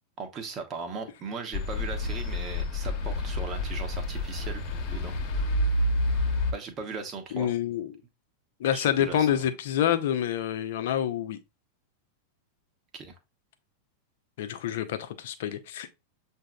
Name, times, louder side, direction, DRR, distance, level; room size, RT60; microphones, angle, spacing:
voice 1, 0.2-4.6 4.9-5.1 6.5-7.5 8.7-9.3 12.9-13.1, right 4 dB, 30° right, 1.1 m, -38 dB
sound 1, 1.5-6.5, left 1 dB, 35° left, 1.1 m, -28 dB
voice 2, 7.3-7.9 8.6-11.4 14.4-15.9, left 10 dB, 55° left, 0.6 m, -27 dB
7.3 x 2.7 x 2.4 m
figure-of-eight pair, 90°, 0 cm